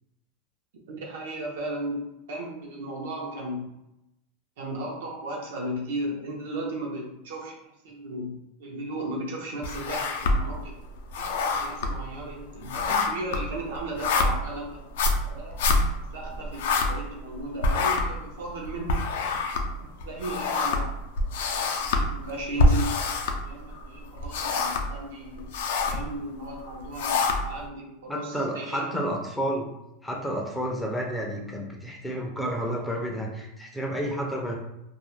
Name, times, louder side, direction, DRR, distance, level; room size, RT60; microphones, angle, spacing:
voice 1, 0.9-3.7 4.6-10.7 11.1-14.8 15.2-15.6 16.1-19.1 20.1-21.0 21.6-23.0 23.4-25.5 25.9-28.9, right 1 dB, 85° right, -3 dB, 0.7 m, -35 dB
sound 1, 9.6-10.6 11.0-17.3 17.6-23.8 24.2-25.0 25.3-26.1 26.6-27.6, left 3 dB, 75° left, 0.4 m, -26 dB
voice 2, 28.1-29.7 30.0-34.6, equal, 5° left, -1 dB, 0.4 m, -30 dB
2.3 x 2.1 x 3.0 m, 0.87 s
supercardioid pair, 170°, 0 cm